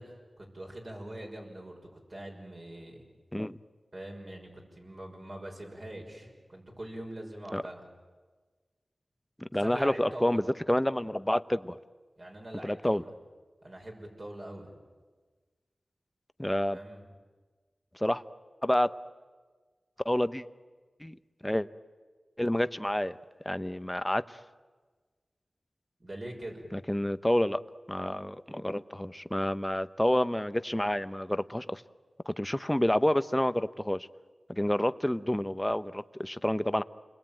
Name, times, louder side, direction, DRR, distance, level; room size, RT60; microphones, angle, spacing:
voice 1, 0.0-3.0 3.9-7.9 9.6-10.5 12.2-13.1 13.6-14.8 16.7-17.1 26.0-26.7, right 1 dB, 45° right, 0 dB, 6.1 m, -43 dB
voice 2, 9.4-10.4 10.7-11.8 12.6-13.0 16.4-16.8 18.0-18.2 18.6-18.9 20.0-20.4 21.0-21.2 21.4-21.7 22.4-23.2 23.4-24.2 26.7-27.6 27.9-31.8 32.3-34.1 34.5-36.8, left 1 dB, 10° left, 13 dB, 0.9 m, -28 dB
29.0 x 21.5 x 9.0 m, 1.4 s
wide cardioid pair, 55°, 0 cm